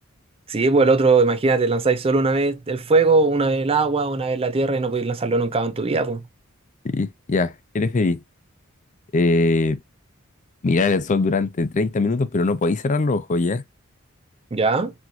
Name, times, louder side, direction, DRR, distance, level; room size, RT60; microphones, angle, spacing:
voice 1, 0.5-6.2 14.5-14.9, right 3 dB, 25° right, 0.5 m, -20 dB
voice 2, 6.8-8.2 9.1-9.8 10.6-13.6, left 3 dB, 35° left, 0.4 m, -21 dB
4.2 x 2.9 x 2.6 m
head